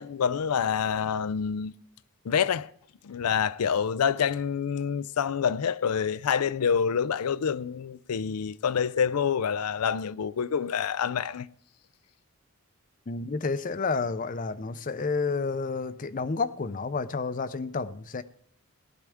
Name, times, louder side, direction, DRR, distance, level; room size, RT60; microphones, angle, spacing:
voice 1, 0.0-1.7 2.2-2.7 3.0-11.5, left 7 dB, 90° left, 0.4 m, -27 dB
voice 2, 13.1-18.2, left 4 dB, 35° left, 0.5 m, -30 dB
18.0 x 12.0 x 3.6 m
head